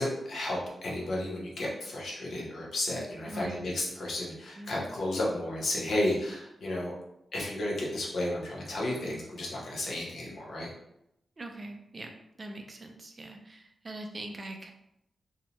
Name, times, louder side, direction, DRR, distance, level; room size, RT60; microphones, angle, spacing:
voice 1, 0.0-6.9 7.3-10.7, left 1 dB, 60° left, -4 dB, 0.7 m, -33 dB
voice 2, 3.3-3.6 4.6-4.7 11.4-12.1 12.4-14.7, right 2 dB, 25° right, 3 dB, 0.3 m, -42 dB
2.7 x 2.1 x 2.8 m, 0.82 s
wide cardioid pair, 180°, 0 cm